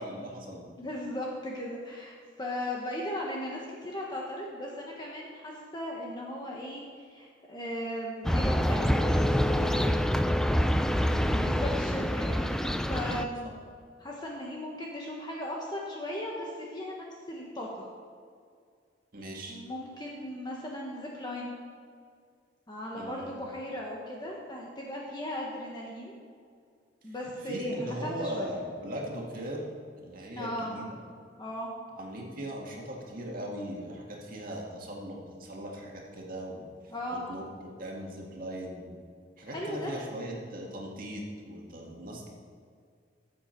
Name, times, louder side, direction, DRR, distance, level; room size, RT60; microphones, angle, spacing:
voice 1, 0.0-0.7 10.9-11.3 19.1-19.6 22.9-23.4 27.4-29.6 30.0-31.0 31.9-36.7 37.1-39.0 39.4-42.3, equal, 50° right, -2 dB, 2.0 m, -39 dB
voice 2, 0.6-9.9 11.2-13.5 14.0-17.9 19.5-21.5 22.7-26.1 27.0-28.6 30.4-30.7 31.4-31.7 36.9-37.2 39.5-40.0, left 1 dB, 25° left, -2 dB, 1.2 m, -37 dB
sound 1, 8.2-13.3, equal, 5° left, 0.4 m, -26 dB
14.0 x 7.6 x 4.5 m, 2.1 s
head